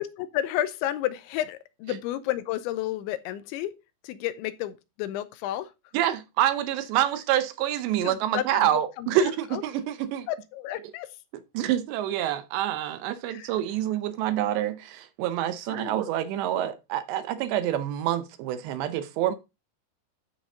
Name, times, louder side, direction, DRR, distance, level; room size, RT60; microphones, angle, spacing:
voice 1, 0.0-3.7 4.0-5.7 8.0-9.6 10.3-11.1 13.3-13.5 15.7-16.0, left 13 dB, 80° left, 3.0 m, -32 dB
voice 2, 5.9-10.3 11.5-19.4, right 11 dB, 80° right, 2.7 m, -27 dB
13.0 x 5.2 x 3.8 m
omnidirectional pair, 5.4 m